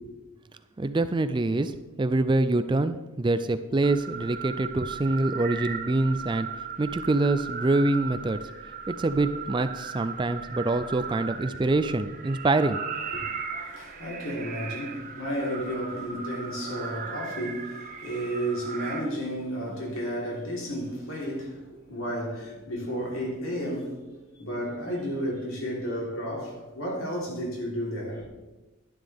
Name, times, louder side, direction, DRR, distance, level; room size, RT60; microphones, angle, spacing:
voice 1, 0.8-6.5 6.8-8.4 8.9-12.8, right 2 dB, 20° right, 0.3 m, -25 dB
sound 1, 3.8-19.0, right 6 dB, 35° right, 1.0 m, -37 dB
voice 2, 13.1-24.0 24.4-28.3, equal, 70° left, 3.6 m, -32 dB
11.5 x 11.0 x 3.5 m
head